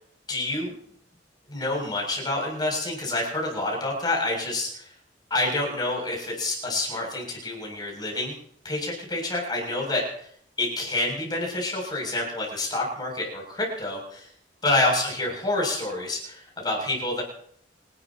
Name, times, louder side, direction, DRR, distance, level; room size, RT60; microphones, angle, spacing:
voice 1, 0.3-0.7 1.5-4.9 5.3-8.3 8.6-10.0 10.6-14.3 14.6-17.2, left 2 dB, 25° left, -1 dB, 7.6 m, -28 dB
28.0 x 12.5 x 3.0 m, 0.63 s
head